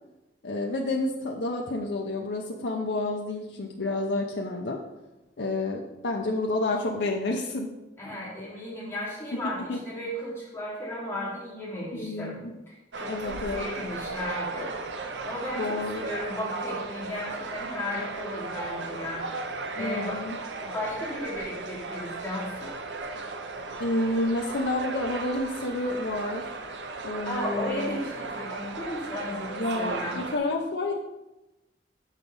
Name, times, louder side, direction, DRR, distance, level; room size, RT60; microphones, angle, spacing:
voice 1, 0.4-4.8 5.4-7.7 9.3-9.4 9.7-9.8 11.9-12.5 13.1-13.7 15.5-16.0 19.8-20.4 23.8-26.5 27.0-28.0 29.6-30.9, left 2 dB, 80° left, 0 dB, 0.7 m, -29 dB
voice 2, 8.0-14.8 15.2-19.4 19.7-20.2 20.6-22.7 27.2-30.2, left 1 dB, 15° left, -7 dB, 2.8 m, -35 dB
sound 1, 12.9-30.4, right 3 dB, 90° right, 0.7 m, -36 dB
6.6 x 5.0 x 5.5 m, 0.99 s
head